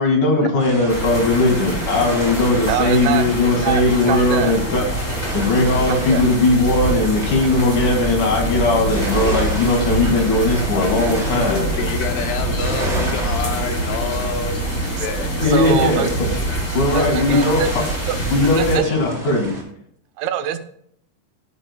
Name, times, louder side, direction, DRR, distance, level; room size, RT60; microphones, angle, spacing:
voice 1, 0.0-4.8 5.3-11.7 15.3-16.3 16.7-17.6 18.3-19.5, left 2 dB, 50° left, 1 dB, 3.1 m, -18 dB
sound 1, 0.6-19.6, right 1 dB, 20° right, 2.4 m, -33 dB
sound 2, 0.9-18.8, right 1 dB, 15° left, 4.0 m, -25 dB
voice 2, 2.7-3.3 3.6-4.5 5.8-6.2 10.0-10.2 14.9-15.1 15.4-16.1 16.7-17.7 18.1-19.0 20.2-20.6, right 11 dB, 80° right, 9 dB, 3.0 m, -25 dB
voice 3, 11.5-14.7 15.0-15.8, left 6 dB, 75° left, 6 dB, 2.7 m, -27 dB
17.5 x 10.5 x 2.2 m, 0.68 s
omnidirectional pair, 5.3 m